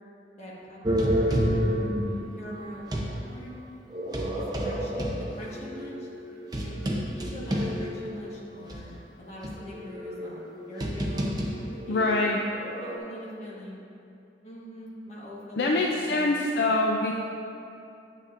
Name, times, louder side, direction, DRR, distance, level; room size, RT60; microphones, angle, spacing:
voice 1, 0.4-2.0 2.4-3.5 4.3-6.7 7.1-11.4 11.7-12.2 12.8-13.8 14.4-16.7, equal, 40° left, -5 dB, 1.5 m, -43 dB
sound 1, 0.8-3.2 3.9-8.3 8.7-8.8 9.4-13.0, equal, 20° right, 0.7 m, -29 dB
voice 2, 11.9-12.4 15.6-17.1, left 2 dB, 65° left, 0 dB, 0.4 m, -24 dB
9.6 x 7.7 x 2.5 m, 2.7 s
head